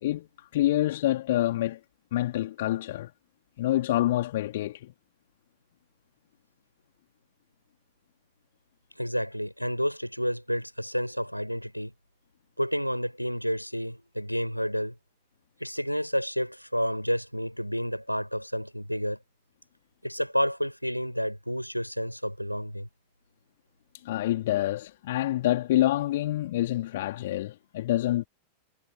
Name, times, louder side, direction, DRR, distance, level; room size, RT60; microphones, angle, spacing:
voice 1, 0.0-1.8 2.1-3.1 3.6-4.9 24.0-28.2, left 14 dB, 55° left, 3.2 m, -27 dB
voice 2, 9.0-11.9 12.6-14.9 15.6-19.2 20.0-22.9, equal, 90° left, 6.6 m, -30 dB
figure-of-eight pair, 90°, 0 cm